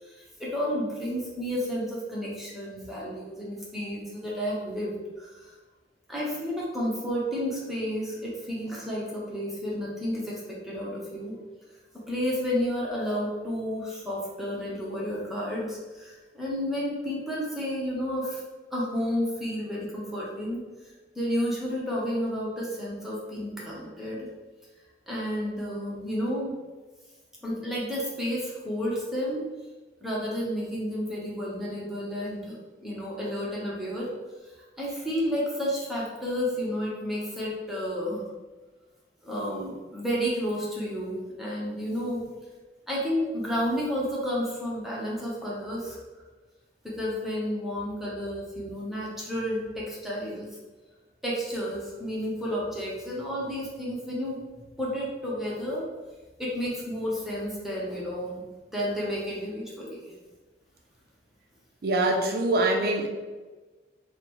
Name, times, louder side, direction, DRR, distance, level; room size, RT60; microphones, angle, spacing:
voice 1, 0.0-5.5 6.1-11.4 11.9-18.4 18.7-24.3 25.1-26.5 27.4-29.5 30.0-34.1 34.4-38.3 39.2-42.3 42.9-46.0 46.8-50.5 51.2-54.4 54.8-55.9 56.4-58.4 58.7-60.1, equal, ahead, -6 dB, 0.6 m, -31 dB
voice 2, 61.8-63.1, right 2 dB, 55° right, 3 dB, 0.4 m, -24 dB
4.9 x 2.0 x 3.0 m, 1.3 s
head